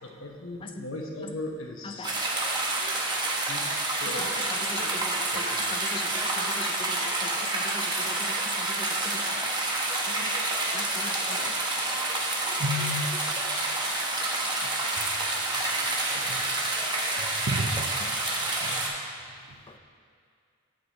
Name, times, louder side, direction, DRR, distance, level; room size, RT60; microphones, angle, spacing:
voice 1, 0.0-2.3 3.5-4.4 4.8-5.0 5.3-5.5, left 2 dB, 85° left, 1 dB, 1.1 m, -38 dB
sound 1, 2.0-18.9, right 2 dB, 20° right, 1.1 m, -28 dB
voice 2, 4.0-9.5 10.0-10.3 10.7-11.6 19.7-19.8, left 4 dB, 25° left, 6 dB, 0.5 m, -40 dB
sound 2, 8.7-8.8 9.1-18.8, left 3 dB, 55° left, 1.3 m, -40 dB
voice 3, 12.6-13.1 15.0-15.1 16.2-16.4 17.2-17.9 18.6-18.8, equal, 70° right, 5 dB, 0.7 m, -31 dB
7.8 x 7.8 x 4.0 m, 2.2 s
head